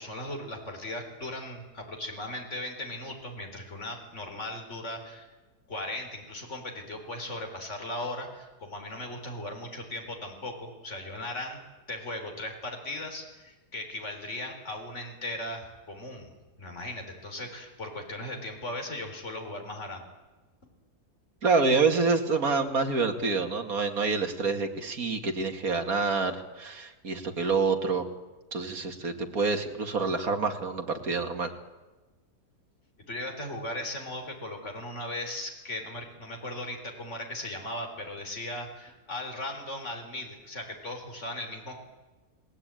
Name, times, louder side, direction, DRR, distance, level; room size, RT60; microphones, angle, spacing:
voice 1, 0.0-5.3 5.7-11.6 11.9-16.3 16.6-20.0 33.1-41.8, left 1 dB, 45° left, 4 dB, 4.4 m, -37 dB
voice 2, 21.4-28.0 28.5-31.5, right 4 dB, 55° right, 4 dB, 2.7 m, -27 dB
29.5 x 19.0 x 9.1 m, 1.2 s
omnidirectional pair, 1.8 m